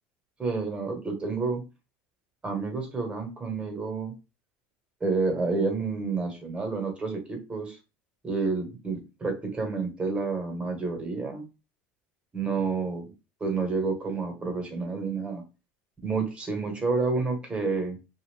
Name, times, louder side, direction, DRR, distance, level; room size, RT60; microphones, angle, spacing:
voice 1, 0.4-1.6 2.4-4.1 5.0-7.8 8.2-11.4 12.3-13.1 13.4-15.4 16.0-18.0, right 4 dB, 20° right, 3 dB, 1.3 m, -29 dB
2.5 x 2.4 x 3.5 m, 0.28 s
supercardioid pair, 95°, 6 cm